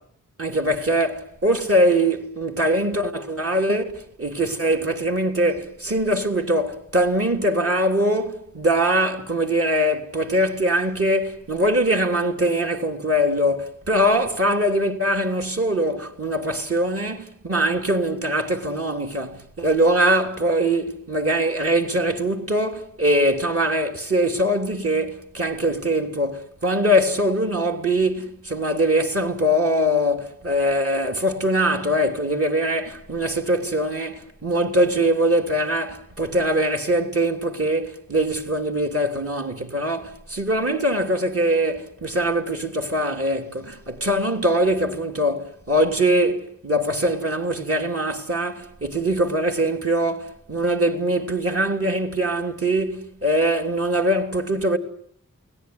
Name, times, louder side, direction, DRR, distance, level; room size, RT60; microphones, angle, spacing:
voice 1, 0.4-54.8, right 1 dB, 45° right, 3.5 m, -22 dB
29.5 x 19.5 x 9.7 m
wide cardioid pair, 70°, 32 cm